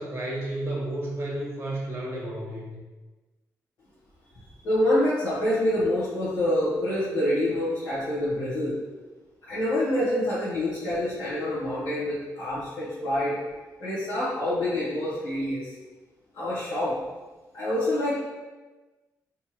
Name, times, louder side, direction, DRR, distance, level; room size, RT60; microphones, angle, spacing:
voice 1, 0.0-2.8, right 1 dB, 35° right, -3 dB, 1.0 m, -32 dB
voice 2, 4.6-8.7 9.4-13.4 13.8-15.7 16.3-16.9 17.5-18.1, left 1 dB, 80° left, -13 dB, 1.5 m, -26 dB
3.4 x 3.0 x 3.1 m, 1.2 s
cardioid pair, 65°, 7 cm